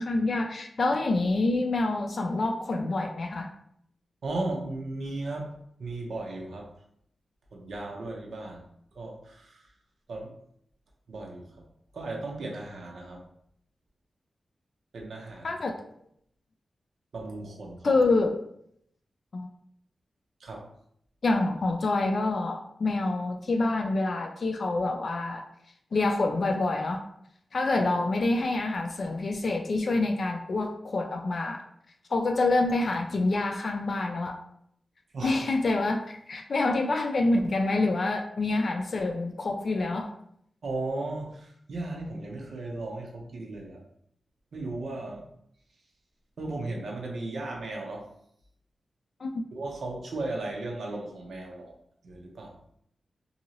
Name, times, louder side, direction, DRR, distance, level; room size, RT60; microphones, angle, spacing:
voice 1, 0.0-3.5 15.4-15.7 17.8-18.3 19.3-19.5 21.2-25.5 25.9-27.0 27.5-31.6 32.1-34.4 35.2-40.1 49.2-49.3, left 2 dB, 50° left, 4 dB, 0.3 m, -27 dB
voice 2, 4.2-5.5 5.8-6.7 7.5-8.6 8.9-9.6 10.1-10.3 11.1-11.4 11.9-13.2 14.9-15.6 17.1-18.0 20.4-20.7 35.1-35.4 40.6-43.8 44.5-45.2 46.4-48.1 49.5-51.7 52.0-52.5, right 2 dB, 80° right, -1 dB, 0.7 m, -36 dB
2.7 x 2.7 x 2.9 m, 0.70 s
wide cardioid pair, 155°, 0 cm